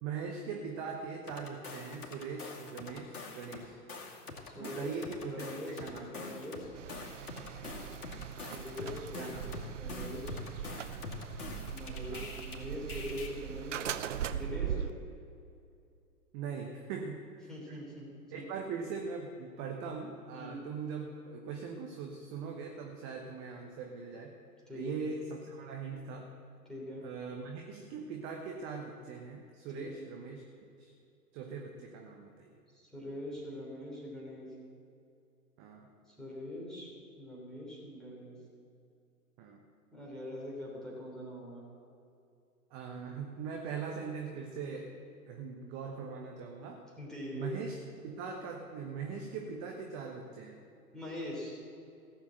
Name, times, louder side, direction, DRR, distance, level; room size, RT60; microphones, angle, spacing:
voice 1, 0.0-3.8 4.5-6.4 9.1-9.9 12.1-12.3 16.3-17.8 18.3-24.3 24.7-26.3 27.0-30.4 30.8-30.9 31.3-32.5 35.6-35.9 39.4-39.6 42.7-44.9 45.3-46.8 47.3-47.8 48.0-50.6, right 5 dB, 25° right, 2 dB, 1.0 m, -41 dB
sound 1, 1.3-3.6 3.9-12.6 12.9-13.3, left 3 dB, 65° left, 2.5 m, -44 dB
voice 2, 4.4-4.9 5.2-6.7 8.4-10.4 11.7-13.9 14.3-14.9 17.5-18.1 18.3-18.4 20.3-20.6 24.7-25.0 26.6-27.0 29.7-30.0 32.7-34.5 36.1-36.9 37.2-38.4 39.9-41.6 47.0-47.5 50.9-51.6, left 1 dB, ahead, -5 dB, 3.3 m, -43 dB
sound 2, 6.7-14.9, right 9 dB, 50° right, 0.7 m, -40 dB
16.0 x 7.3 x 7.6 m, 2.5 s
figure-of-eight pair, 115°, 48 cm